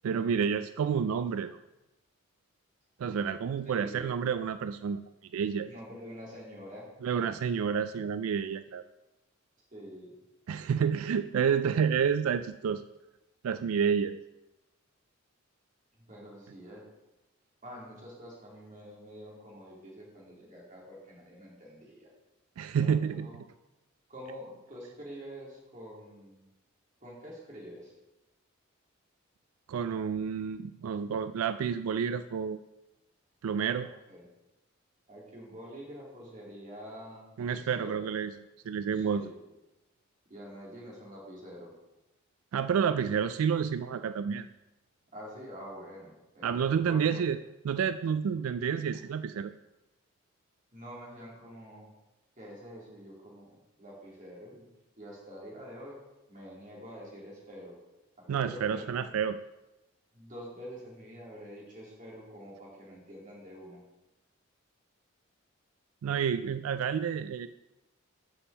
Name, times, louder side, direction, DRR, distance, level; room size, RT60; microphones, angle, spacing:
voice 1, 0.0-1.6 3.0-5.0 5.3-5.7 7.0-8.8 10.5-12.8 13.4-14.2 22.6-23.3 29.7-32.6 33.4-33.9 37.4-38.3 38.7-39.2 42.5-44.5 46.4-47.4 47.6-49.5 58.3-59.4 66.0-67.5, right 7 dB, 90° right, 11 dB, 0.3 m, -29 dB
voice 2, 3.6-4.1 5.6-6.9 9.7-10.1 16.1-16.8 17.6-22.1 22.7-23.4 24.1-26.4 27.0-27.9 33.8-34.3 35.1-38.1 38.9-39.4 40.3-41.7 45.1-46.5 46.8-47.2 50.7-51.9 52.4-54.7 55.0-56.0 56.3-57.8 58.2-58.9 60.1-63.8, equal, 35° right, -4 dB, 2.9 m, -46 dB
6.9 x 5.5 x 7.0 m, 0.99 s
head